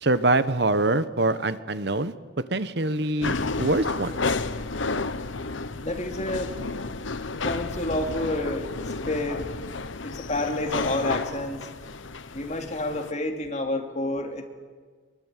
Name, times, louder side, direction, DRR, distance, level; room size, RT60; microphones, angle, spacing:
voice 1, 0.0-2.1 2.5-4.1, right 2 dB, 55° right, 13 dB, 1.2 m, -24 dB
sound 1, 3.2-13.1, left 3 dB, 75° left, 1.0 m, -31 dB
voice 2, 5.8-6.5 7.4-9.5 10.0-11.6 12.3-14.5, left 2 dB, 35° left, 4 dB, 2.7 m, -29 dB
23.0 x 22.5 x 9.2 m, 1.6 s
head